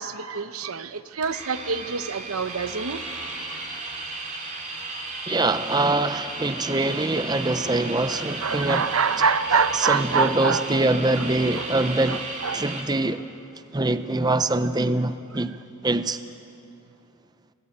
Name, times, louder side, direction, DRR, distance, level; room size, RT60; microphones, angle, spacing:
voice 1, 0.0-3.0 3.5-3.6 8.1-10.7 11.6-11.7 12.1-12.6, right 5 dB, 85° right, 11 dB, 0.9 m, -26 dB
sound 1, 1.2-12.8, right 3 dB, 35° right, 3.0 m, -34 dB
voice 2, 5.3-8.9 9.7-12.2 12.5-13.2 13.7-15.6 15.8-16.2, right 2 dB, 20° right, 11 dB, 0.6 m, -24 dB
27.5 x 17.5 x 8.8 m, 2.6 s
head